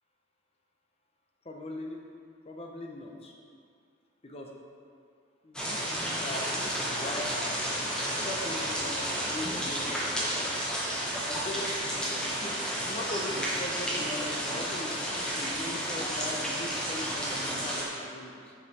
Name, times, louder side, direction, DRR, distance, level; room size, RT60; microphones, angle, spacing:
voice 1, 1.4-2.0 2.4-3.3 4.2-4.5 5.4-7.7 8.1-10.6 11.3-18.5, left 1 dB, 30° left, 1 dB, 0.7 m, -40 dB
sound 1, 5.5-17.8, equal, 5° left, 1.0 m, -32 dB
6.7 x 5.3 x 4.2 m, 2.3 s
head